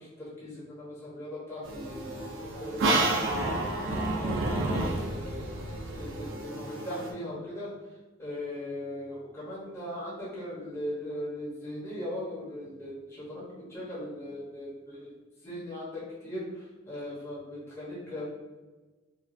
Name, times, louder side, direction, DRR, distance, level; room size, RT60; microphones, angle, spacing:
voice 1, 0.0-4.4 4.8-5.5 5.9-7.7 8.2-15.1 15.4-18.3, left 1 dB, 15° left, -8 dB, 0.9 m, -39 dB
sound 1, 1.6-7.1, right 2 dB, 70° right, 0.6 m, -30 dB
4.5 x 2.4 x 2.6 m, 1.2 s
head